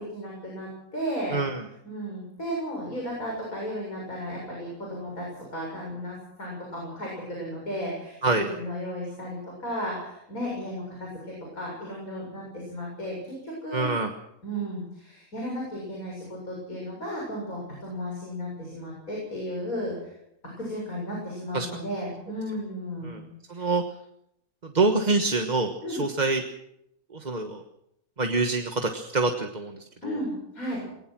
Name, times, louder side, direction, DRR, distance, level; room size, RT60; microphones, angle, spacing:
voice 1, 0.1-1.4 1.8-13.9 14.4-19.9 20.6-23.2 23.5-23.7 25.8-26.1 30.0-30.8, equal, 75° left, -2 dB, 7.8 m, -34 dB
voice 2, 1.3-1.6 8.2-8.4 13.7-14.1 21.5-21.7 23.0-23.2 23.5-23.8 24.6-26.4 27.1-27.6 28.2-29.8 30.0-30.2, right 3 dB, 30° right, 4 dB, 1.4 m, -25 dB
21.5 x 19.5 x 6.2 m, 0.78 s
omnidirectional pair, 1.5 m